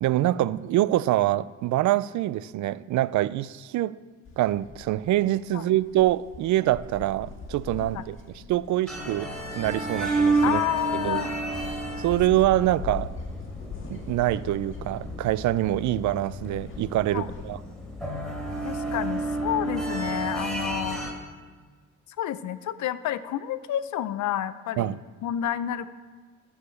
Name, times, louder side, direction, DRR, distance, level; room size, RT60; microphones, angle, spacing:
voice 1, 0.0-4.0 4.4-8.2 8.5-10.6 10.9-11.2 12.0-13.1 13.9-17.6 24.8-25.0, right 14 dB, 70° right, 18 dB, 0.4 m, -25 dB
sound 1, 4.2-17.5, left 4 dB, 40° left, 1.9 m, -42 dB
sound 2, 8.9-21.1, right 2 dB, ahead, 3.1 m, -31 dB
voice 2, 10.4-11.3 17.1-17.3 18.6-21.0 22.2-25.9, left 11 dB, 70° left, 14 dB, 0.6 m, -29 dB
13.5 x 4.9 x 6.8 m, 1.5 s
cardioid pair, 90°, 30 cm